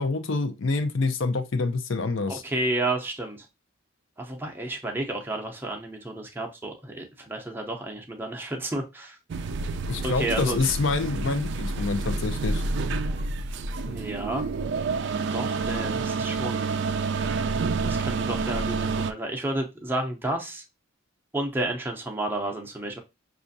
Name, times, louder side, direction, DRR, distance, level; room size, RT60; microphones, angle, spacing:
voice 1, 0.0-2.4 9.9-12.6, left 3 dB, 65° left, 0.6 m, -26 dB
voice 2, 2.3-3.5 4.2-9.2 10.0-10.6 13.8-14.5 15.3-16.8 17.8-20.6 21.3-23.0, right 1 dB, 10° right, 0.6 m, -31 dB
sound 1, 9.3-19.1, right 4 dB, 55° right, 0.3 m, -28 dB
6.0 x 2.5 x 2.6 m
head